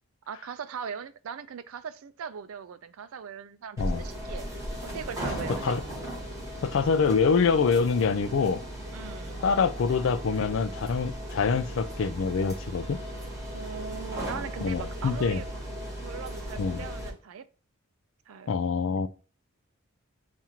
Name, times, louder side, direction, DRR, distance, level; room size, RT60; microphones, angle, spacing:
voice 1, 0.3-4.4 4.8-5.8 8.9-9.4 13.5-15.5 16.0-17.5 18.3-18.5, right 6 dB, 75° right, 0.4 m, -40 dB
sound 1, 3.8-17.1, equal, 15° right, 1.4 m, -37 dB
voice 2, 5.5-5.8 6.6-8.6 9.4-13.0 14.6-15.4 16.6-16.8 18.5-19.1, left 5 dB, 65° left, 0.4 m, -25 dB
7.2 x 2.5 x 2.8 m
head